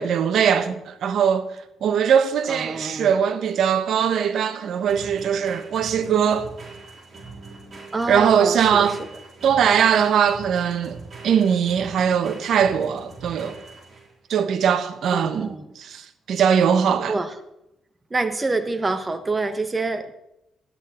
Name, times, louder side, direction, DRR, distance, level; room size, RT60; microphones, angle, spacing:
voice 1, 0.0-1.5 1.8-6.5 8.1-9.0 9.4-11.0 11.2-13.6 14.3-17.1, right 8 dB, 65° right, 1.0 m, -21 dB
voice 2, 2.5-3.3 7.9-9.1 15.1-15.7 17.1-17.3 18.1-20.2, right 3 dB, 20° right, 1.2 m, -26 dB
sound 1, 3.0-14.3, right 3 dB, 40° right, 3.5 m, -42 dB
12.5 x 9.3 x 4.3 m
cardioid pair, 90°, 0 cm